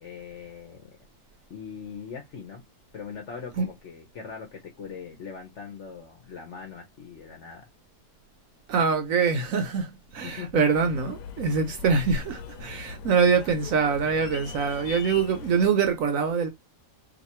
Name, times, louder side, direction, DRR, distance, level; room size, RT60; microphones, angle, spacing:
voice 1, 0.0-0.9 1.5-2.6 2.9-7.7 10.2-10.6, left 6 dB, 55° left, 0.9 m, -40 dB
voice 2, 8.7-16.5, right 5 dB, 65° right, 0.9 m, -24 dB
sound 1, 10.7-15.7, left 7 dB, 80° left, 1.1 m, -41 dB
2.9 x 2.4 x 4.2 m
omnidirectional pair, 1.8 m